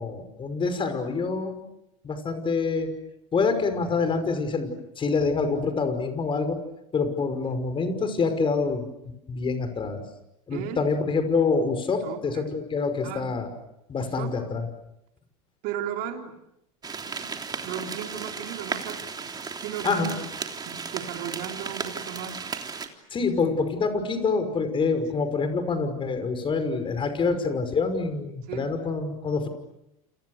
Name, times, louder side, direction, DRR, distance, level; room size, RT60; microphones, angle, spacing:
voice 1, 0.0-1.5 2.0-2.9 3.3-6.6 6.9-8.8 9.3-10.0 10.5-13.5 13.9-14.6 19.8-20.1 23.1-29.5, left 4 dB, 30° left, 9 dB, 5.8 m, -26 dB
voice 2, 10.5-10.9 12.0-12.5 13.0-13.3 14.0-14.4 15.6-16.4 17.1-17.3 17.6-20.2 20.6-22.4 28.5-28.7, right 9 dB, 55° right, 4 dB, 3.8 m, -36 dB
sound 1, 16.8-22.9, right 5 dB, 20° right, 3.4 m, -35 dB
30.0 x 28.5 x 6.7 m, 0.83 s
hypercardioid pair, 95°, 18 cm